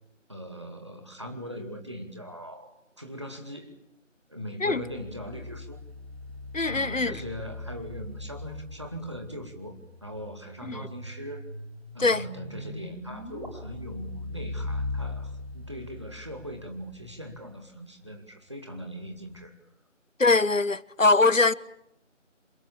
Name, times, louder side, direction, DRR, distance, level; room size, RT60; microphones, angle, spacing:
voice 1, 0.3-3.8 4.3-5.8 6.6-11.5 11.9-19.5, equal, 20° right, 2.3 m, -40 dB
sound 1, 4.6-9.3 12.6-17.3 19.3-19.4, left 2 dB, 55° right, 1.5 m, -39 dB
voice 2, 6.5-7.1 10.7-10.9 12.0-12.2 20.2-21.5, left 3 dB, 80° left, 1.3 m, -22 dB
sound 2, 7.5-13.5, right 1 dB, 40° right, 6.0 m, -45 dB
27.5 x 25.5 x 7.5 m
figure-of-eight pair, 170°, 38 cm